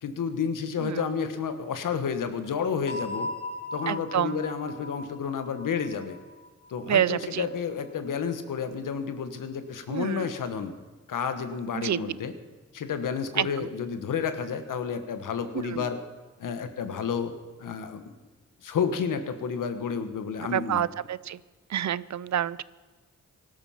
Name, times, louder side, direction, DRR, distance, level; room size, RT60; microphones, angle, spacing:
voice 1, 0.0-3.3 3.7-6.2 6.7-10.7 11.1-12.3 12.7-16.0 16.4-18.1 18.6-20.8, left 6 dB, 90° left, 9 dB, 1.3 m, -31 dB
sound 1, 2.9-7.5, left 1 dB, 30° left, 2.1 m, -39 dB
voice 2, 3.9-4.4 6.9-7.4 9.9-10.3 11.7-12.0 13.4-13.7 15.6-15.9 20.5-21.4 21.7-22.6, right 10 dB, 65° right, 19 dB, 0.5 m, -28 dB
17.5 x 12.5 x 5.8 m, 1.3 s
cardioid pair, 55°, 31 cm